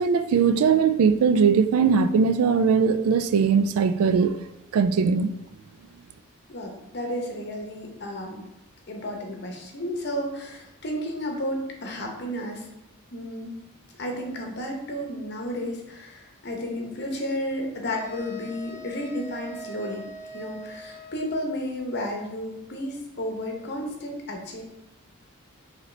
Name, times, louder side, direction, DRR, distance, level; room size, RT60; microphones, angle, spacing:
voice 1, 0.0-4.4 4.7-5.3, right 6 dB, 75° right, 0.3 m, -20 dB
voice 2, 6.5-8.5 8.9-12.7 13.1-13.6 14.0-20.0 20.3-24.6, equal, 50° left, 0.8 m, -32 dB
sound 1, 17.9-21.6, right 2 dB, 20° right, 1.1 m, -42 dB
4.8 x 2.9 x 3.2 m
head